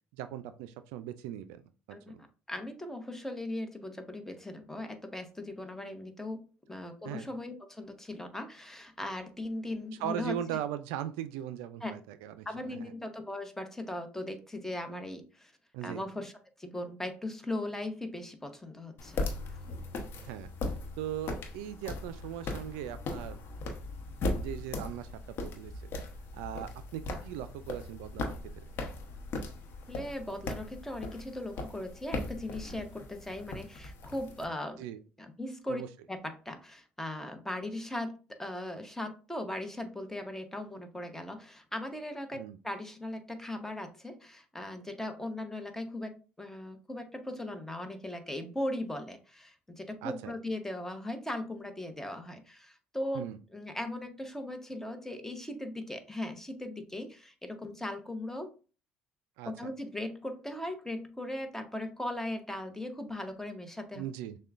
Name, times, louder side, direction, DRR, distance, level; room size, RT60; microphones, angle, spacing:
voice 1, 0.1-2.2 7.1-7.3 10.0-12.9 15.7-16.0 20.2-20.5 21.0-23.4 24.4-25.7 26.3-28.6 34.8-35.0 35.7-35.9 42.3-42.6 50.0-50.3 53.1-53.4 59.4-59.5 63.9-64.4, right 11 dB, 80° right, 11 dB, 0.3 m, -39 dB
voice 2, 2.5-10.6 11.8-11.9 12.4-15.5 15.8-16.3 16.6-19.2 29.9-34.8 35.2-35.8 36.1-53.2 53.5-58.5 59.5-64.0, left 1 dB, 10° left, 6 dB, 0.9 m, -38 dB
sound 1, 19.0-34.4, left 2 dB, 55° left, 0.8 m, -38 dB
6.4 x 2.2 x 2.4 m, 0.34 s
supercardioid pair, 75°, 5 cm